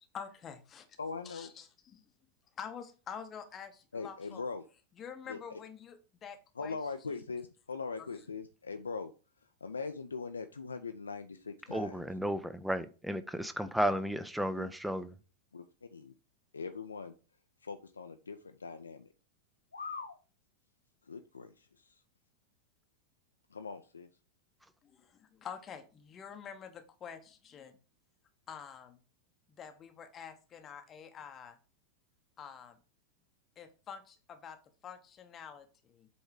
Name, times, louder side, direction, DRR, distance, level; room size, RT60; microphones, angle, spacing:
voice 1, 0.0-0.9 1.2-2.0 2.6-4.4 5.0-6.8 24.8-27.8 28.5-29.0 29.6-31.6 32.4-32.8 33.6-34.6 34.8-36.1, left 7 dB, 25° left, 0.7 m, -47 dB
voice 2, 1.0-1.5 3.9-4.6 5.3-5.6 6.6-9.1 9.6-12.0 14.6-14.7 15.5-16.1 16.5-17.1 17.6-19.1 19.7-20.2 21.0-22.0 23.5-24.1, left 4 dB, 75° left, 0.4 m, -41 dB
voice 3, 11.7-15.1, equal, 5° right, 0.4 m, -33 dB
8.0 x 3.2 x 4.7 m
figure-of-eight pair, 90°, 0 cm